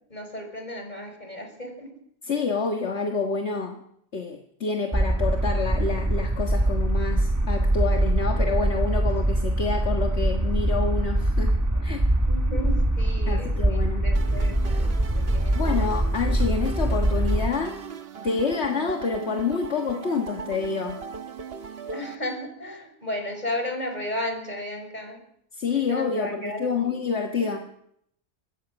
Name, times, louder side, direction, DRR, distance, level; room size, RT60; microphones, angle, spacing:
voice 1, 0.1-1.9 12.3-14.9 15.2-15.9 21.9-25.2 25.7-27.0 27.4-27.5, left 1 dB, 35° left, 4 dB, 5.7 m, -34 dB
voice 2, 2.2-3.8 4.1-11.6 11.8-12.1 13.3-14.1 15.5-17.8 18.2-21.0 25.5-27.6, left 5 dB, 65° left, 3 dB, 1.8 m, -28 dB
sound 1, 4.9-17.5, right 1 dB, 15° right, 1.4 m, -23 dB
sound 2, 14.2-22.2, right 5 dB, 55° right, 1.3 m, -39 dB
25.5 x 21.0 x 6.3 m, 0.73 s
omnidirectional pair, 1.2 m